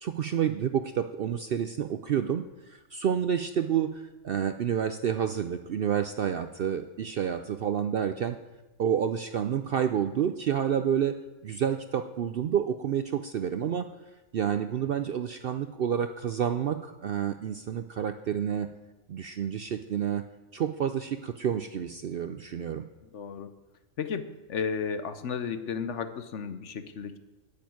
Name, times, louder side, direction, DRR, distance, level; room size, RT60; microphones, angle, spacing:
voice 1, 0.0-8.4 8.8-11.2 11.4-13.9 14.3-18.7 19.1-20.2 20.5-22.8, right 8 dB, 65° right, 10 dB, 0.6 m, -29 dB
voice 2, 23.1-23.5 24.0-27.2, left 6 dB, 65° left, 11 dB, 1.1 m, -33 dB
10.0 x 7.0 x 9.2 m, 1.1 s
omnidirectional pair, 1.4 m